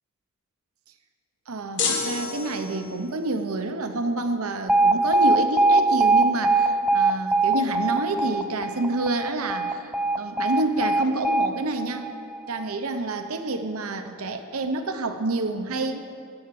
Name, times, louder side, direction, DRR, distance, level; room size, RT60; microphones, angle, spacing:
voice 1, 1.5-12.1 12.5-16.2, right 2 dB, 80° right, 7 dB, 0.9 m, -28 dB
sound 1, 1.8-3.1, left 5 dB, 55° left, 1.4 m, -28 dB
Alarm, 4.7-12.7, right 2 dB, 5° right, 0.3 m, -22 dB
14.5 x 5.8 x 7.6 m, 2.3 s
head